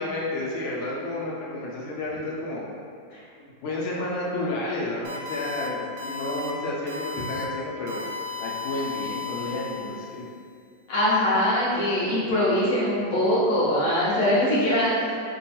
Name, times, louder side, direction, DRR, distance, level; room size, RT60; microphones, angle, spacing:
voice 1, 0.0-2.6 3.4-10.2, left 2 dB, 85° left, -4 dB, 1.4 m, -31 dB
sound 1, 5.0-5.7 6.0-6.5 6.9-7.4 7.9-10.2, left 5 dB, 75° right, 1.0 m, -35 dB
voice 2, 10.9-14.9, left 1 dB, 45° left, -9 dB, 1.1 m, -22 dB
3.3 x 2.3 x 4.1 m, 2.3 s
omnidirectional pair, 2.2 m